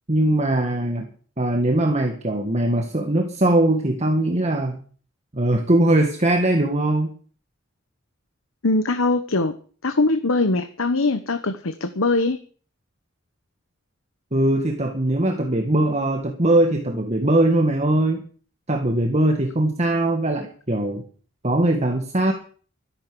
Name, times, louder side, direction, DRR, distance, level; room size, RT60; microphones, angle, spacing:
voice 1, 0.1-1.1 1.4-4.8 5.3-7.1 14.3-18.2 18.7-21.0 21.4-22.3, right 1 dB, 35° right, 4 dB, 1.7 m, -21 dB
voice 2, 8.6-9.5 9.8-12.4, left 2 dB, 85° left, 9 dB, 1.1 m, -21 dB
13.5 x 11.0 x 7.0 m, 0.43 s
head